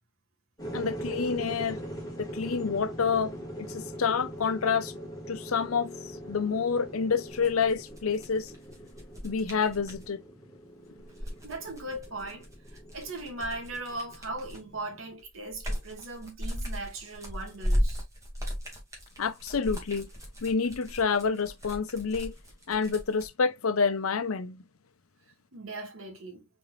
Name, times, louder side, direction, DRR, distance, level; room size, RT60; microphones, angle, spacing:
sound 1, 0.6-15.1, right 1 dB, 20° left, 2.1 m, -42 dB
voice 1, 0.7-1.8 2.2-3.3 3.6-4.9 5.3-5.9 6.3-8.5 9.2-10.2 19.2-20.0 20.4-22.3 22.7-24.6, left 5 dB, 90° left, 0.7 m, -28 dB
sound 2, 7.3-10.1 11.0-14.8 15.2-23.3, equal, 15° right, 2.1 m, -36 dB
voice 2, 11.4-18.0 25.5-26.5, right 2 dB, 70° right, 1.8 m, -39 dB
4.9 x 4.3 x 2.4 m
head